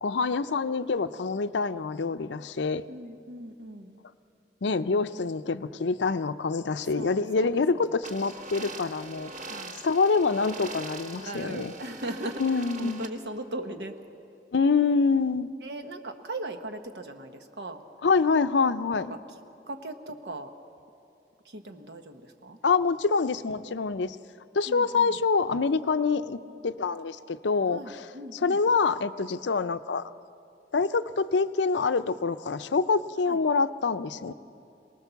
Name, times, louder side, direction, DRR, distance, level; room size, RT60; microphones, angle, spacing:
voice 1, 0.0-2.8 4.6-9.3 9.8-11.7 12.4-13.0 14.5-15.5 18.0-19.2 22.6-24.2 24.5-30.0 30.7-34.3, left 4 dB, 85° left, 12 dB, 0.6 m, -26 dB
voice 2, 2.9-4.0 6.9-7.9 9.5-9.8 11.2-13.9 15.6-17.8 19.0-19.2 19.7-20.5 21.4-22.6 24.7-25.1 27.7-28.6 33.3-33.4 34.3-34.4, right 1 dB, 70° right, 7 dB, 1.2 m, -39 dB
sound 1, 8.0-13.1, right 2 dB, 45° right, 1.4 m, -42 dB
23.0 x 19.5 x 7.0 m, 2.6 s
head